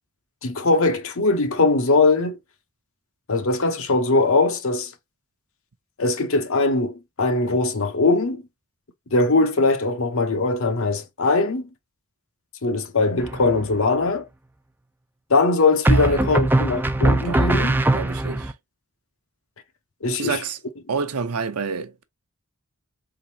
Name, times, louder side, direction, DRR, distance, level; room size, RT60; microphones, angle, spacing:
voice 1, 0.4-2.4 3.3-4.9 6.0-8.4 9.1-11.7 12.6-14.3 15.3-17.8 20.0-20.4, left 3 dB, 65° left, 0.8 m, -21 dB
sound 1, 13.2-13.8 15.8-18.5, right 2 dB, 10° right, 0.3 m, -21 dB
voice 2, 15.9-16.3 17.2-17.5 17.9-18.5 20.2-20.6 20.9-22.0, right 5 dB, 85° right, 0.7 m, -28 dB
4.1 x 3.7 x 2.8 m
head